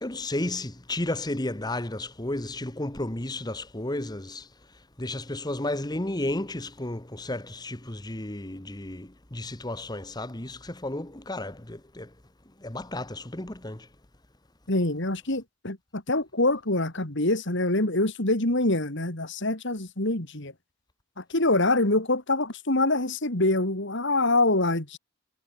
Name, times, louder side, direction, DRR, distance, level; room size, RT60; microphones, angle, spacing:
voice 1, 0.0-4.5 5.0-12.1 12.6-13.9, left 1 dB, 20° left, 1.3 m, -33 dB
voice 2, 14.7-20.5 21.2-25.0, left 2 dB, 55° left, 3.0 m, -25 dB
head